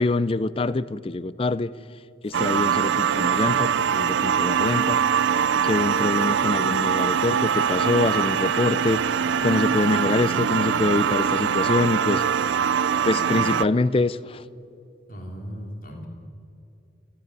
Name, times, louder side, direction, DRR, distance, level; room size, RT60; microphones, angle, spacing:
voice 1, 0.0-1.7 2.2-5.0 5.6-9.0 9.4-12.2 13.0-14.4, left 2 dB, 30° left, 17 dB, 0.4 m, -24 dB
sound 1, 2.2-11.8, right 1 dB, 5° right, 4.0 m, -50 dB
sound 2, 2.3-13.6, right 7 dB, 75° right, 0.4 m, -23 dB
voice 2, 15.1-16.1, equal, 45° left, 1 dB, 3.5 m, -37 dB
28.5 x 9.9 x 9.5 m, 2.7 s
head